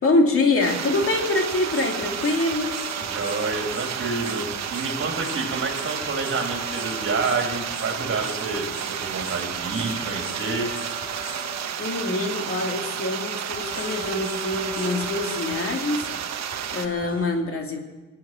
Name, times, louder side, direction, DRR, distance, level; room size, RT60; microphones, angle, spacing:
voice 1, 0.0-2.8 11.8-16.1 16.4-17.8, left 2 dB, 45° left, 2 dB, 2.6 m, -25 dB
sound 1, 0.6-17.3, equal, 30° left, 6.5 m, -39 dB
sound 2, 0.6-16.9, right 9 dB, 60° right, 1.2 m, -32 dB
voice 2, 3.0-10.7, right 3 dB, 45° right, 1 dB, 3.5 m, -28 dB
21.5 x 8.8 x 7.6 m, 1.2 s
cardioid pair, 90°, 30 cm